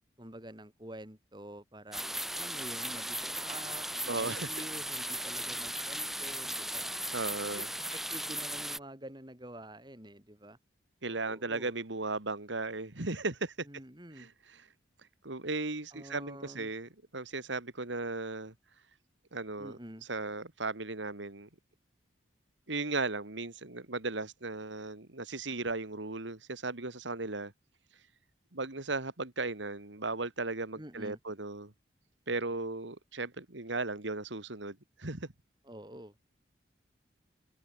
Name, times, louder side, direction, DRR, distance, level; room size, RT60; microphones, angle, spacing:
voice 1, 0.2-2.0 2.3-6.9 7.6-7.7 7.9-10.6 11.1-11.7 13.7-14.3 15.9-16.7 19.6-20.1 30.7-31.2 35.6-36.1, right 1 dB, 25° right, 4.0 m, -48 dB
sound 1, 1.9-8.8, right 1 dB, ahead, 4.3 m, -37 dB
voice 2, 4.1-4.5 7.1-7.7 11.0-13.7 14.2-14.7 15.2-18.5 19.3-19.8 20.1-21.5 22.7-27.5 28.5-31.7 32.3-35.3, right 3 dB, 80° right, 2.2 m, -36 dB
head